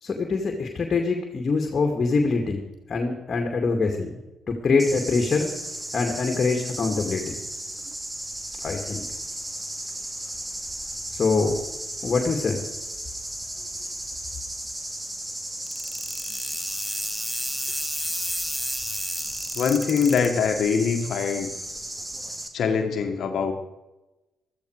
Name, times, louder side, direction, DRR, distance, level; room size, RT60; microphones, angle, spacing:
voice 1, 0.0-4.1 4.5-5.5 5.9-7.4 8.6-9.0 11.1-11.6 12.0-12.6, left 4 dB, 45° left, 3 dB, 2.5 m, -24 dB
sound 1, 4.8-22.5, right 1 dB, 20° right, 2.6 m, -35 dB
sound 2, 15.7-20.3, equal, ahead, 1.8 m, -31 dB
voice 2, 19.5-21.5 22.5-23.5, left 6 dB, 60° left, 5 dB, 1.9 m, -23 dB
15.5 x 14.0 x 4.9 m, 1.0 s
hypercardioid pair, 45°, 0 cm